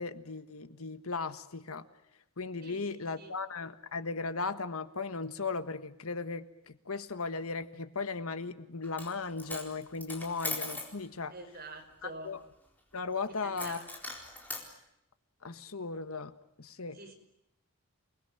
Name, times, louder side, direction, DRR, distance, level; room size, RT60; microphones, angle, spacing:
voice 1, 0.0-1.8 2.4-11.3 12.0-12.4 12.9-13.8 15.4-16.3 16.6-17.0, left 4 dB, 75° left, 11 dB, 1.5 m, -37 dB
voice 2, 2.6-3.3 11.3-12.3 13.4-13.9 16.9-17.1, right 2 dB, 40° right, 4 dB, 5.6 m, -46 dB
Coin (dropping), 8.8-9.1 9.4-10.9 13.6-14.7, left 2 dB, 10° left, 4.2 m, -39 dB
29.0 x 21.0 x 8.9 m, 0.80 s
head